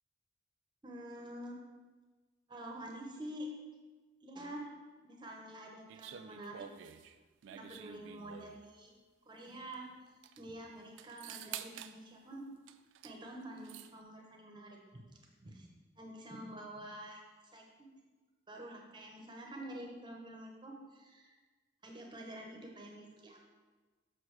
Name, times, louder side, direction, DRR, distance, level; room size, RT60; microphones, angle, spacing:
voice 1, 0.8-1.6 2.5-3.5 4.2-4.7 5.0-6.7 7.5-8.9 9.3-9.9 10.4-12.5 13.0-15.0 15.4-15.7 16.0-17.2 17.5-17.9 18.5-21.4 21.8-23.4, right 1 dB, 25° right, 0 dB, 0.8 m, -47 dB
sound 1, 5.9-8.7 9.7-9.8 10.1-10.4 11.0-12.0 12.7-13.2 13.4-13.9, right 10 dB, 75° right, 0.3 m, -49 dB
6.2 x 5.9 x 3.2 m, 1.3 s
head